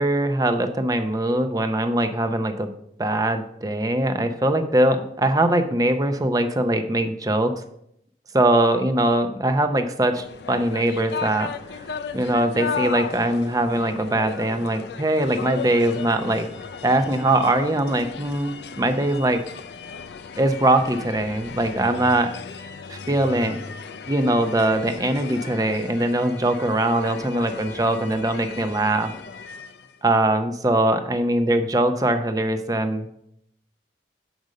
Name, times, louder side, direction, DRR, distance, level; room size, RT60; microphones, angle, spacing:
voice 1, 0.0-2.7 3.0-7.5 8.3-11.5 12.1-16.5 16.8-19.4 20.4-22.3 22.9-23.6 24.1-29.1 30.0-33.1, right 1 dB, 20° right, 8 dB, 0.6 m, -22 dB
sound 1, 10.1-30.0, left 5 dB, 65° left, 0.4 m, -36 dB
6.3 x 5.2 x 6.4 m, 0.74 s
head